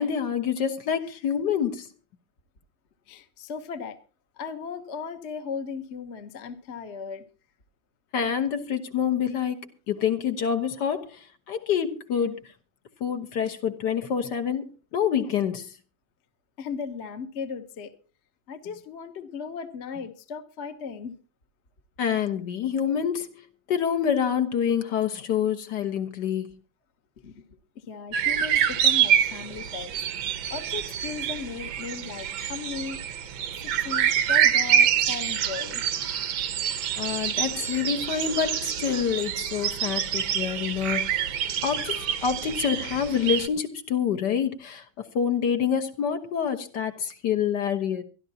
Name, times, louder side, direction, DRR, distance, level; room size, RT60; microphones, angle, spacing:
voice 1, 0.0-1.9 8.1-12.4 13.0-15.7 22.0-26.5 37.0-41.2 41.6-48.0, left 8 dB, 65° left, 1.7 m, -27 dB
voice 2, 3.1-4.0 4.4-7.3 16.6-17.9 18.5-21.2 27.2-29.9 30.5-33.0 33.6-35.8, left 6 dB, 45° left, 1.1 m, -37 dB
sound 1, 28.1-43.5, right 9 dB, 80° right, 1.7 m, -26 dB
24.0 x 11.5 x 2.8 m
omnidirectional pair, 2.1 m